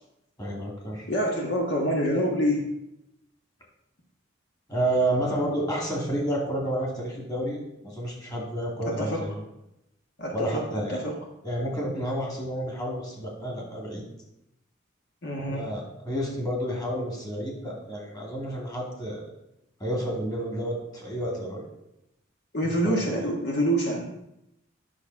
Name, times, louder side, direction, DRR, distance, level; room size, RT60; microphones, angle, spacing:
voice 1, 0.4-1.1 4.7-9.4 10.3-11.0 11.4-14.1 15.5-19.2 19.8-21.7 22.6-23.0, right 1 dB, 20° left, -2 dB, 2.5 m, -30 dB
voice 2, 1.1-2.7 8.9-9.2 10.2-10.6 10.9-11.2 15.2-15.7 22.5-24.2, equal, 60° left, -1 dB, 1.5 m, -26 dB
10.5 x 6.1 x 4.7 m, 0.85 s
head